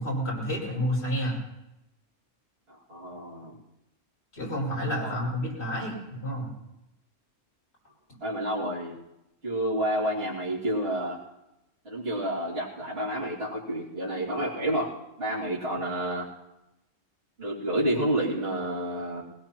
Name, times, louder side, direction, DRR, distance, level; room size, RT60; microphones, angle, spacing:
voice 1, 0.0-1.4 4.3-6.5, equal, 55° left, -5 dB, 5.6 m, -30 dB
voice 2, 2.7-3.6 5.0-5.3 8.2-8.9 9.4-11.2 11.8-14.9 15.2-16.3 17.4-19.2, right 1 dB, 50° right, -8 dB, 2.8 m, -29 dB
20.5 x 17.5 x 3.0 m, 0.90 s
omnidirectional pair, 1.3 m